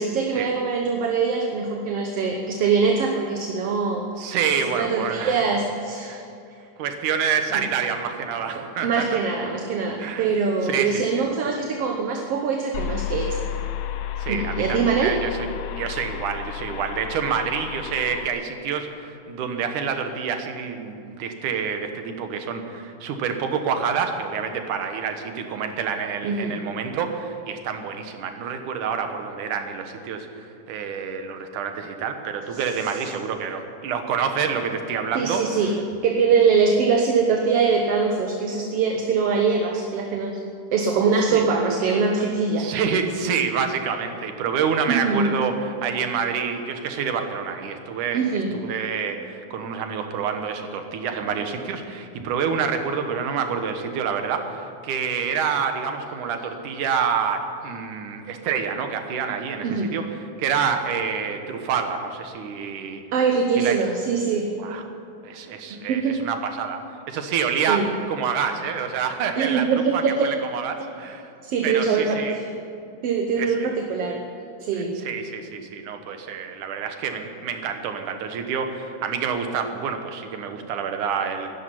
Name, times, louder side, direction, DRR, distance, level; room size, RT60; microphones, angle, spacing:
voice 1, 0.0-4.1 4.8-6.2 7.5-7.7 8.5-13.4 14.3-15.2 26.2-26.6 32.5-32.6 35.2-35.8 36.0-40.4 40.7-42.7 44.9-45.3 48.1-48.6 59.6-60.0 63.1-64.5 65.7-66.3 67.7-68.0 69.4-70.3 71.4-72.5 73.0-74.2 74.6-75.0, right 5 dB, 60° right, 2 dB, 1.8 m, -23 dB
voice 2, 4.2-5.4 6.1-6.2 6.8-9.2 10.0-10.3 10.6-11.3 14.2-15.3 15.7-35.4 41.3-41.4 42.6-63.0 63.6-63.8 64.6-64.9 65.2-66.8 67.1-69.7 69.9-71.2 71.6-72.4 73.4-73.5 75.0-81.5, right 6 dB, 85° right, 6 dB, 2.7 m, -27 dB
sound 1, 12.7-18.3, left 11 dB, 80° left, 1.3 m, -32 dB
12.5 x 11.0 x 9.9 m, 2.5 s
omnidirectional pair, 3.5 m